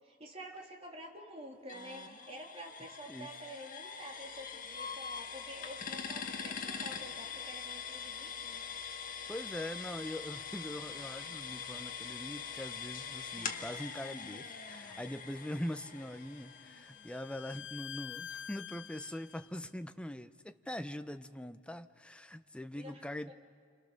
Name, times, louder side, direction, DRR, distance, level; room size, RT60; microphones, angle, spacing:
voice 1, 0.0-8.7 22.7-23.0 23.3-23.4, right 1 dB, 30° right, 0 dB, 3.2 m, -49 dB
sound 1, 1.7-17.4, left 6 dB, 45° left, 1.5 m, -43 dB
voice 2, 9.3-23.3, left 1 dB, 5° left, 9 dB, 0.7 m, -42 dB
Bowed string instrument, 15.7-19.5, left 8 dB, 60° left, 0.8 m, -48 dB
28.5 x 26.5 x 6.7 m, 2.1 s
head